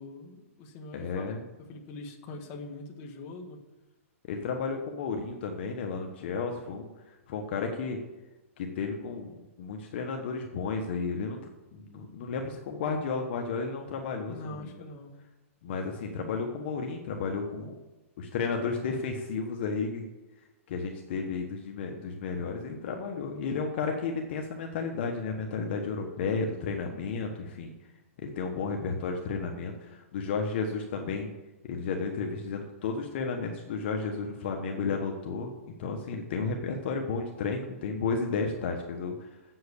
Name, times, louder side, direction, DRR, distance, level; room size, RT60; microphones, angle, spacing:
voice 1, 0.0-1.3 1.7-3.6 14.3-15.2, left 2 dB, 30° left, 2 dB, 1.6 m, -43 dB
voice 2, 0.9-1.4 4.2-8.0 8.6-11.4 11.7-14.7 15.6-17.7 18.2-20.0 20.7-27.7 28.2-31.3 31.6-39.3, left 4 dB, 50° left, 2 dB, 1.3 m, -33 dB
8.0 x 7.8 x 8.4 m, 1.1 s
hypercardioid pair, 155°, 8 cm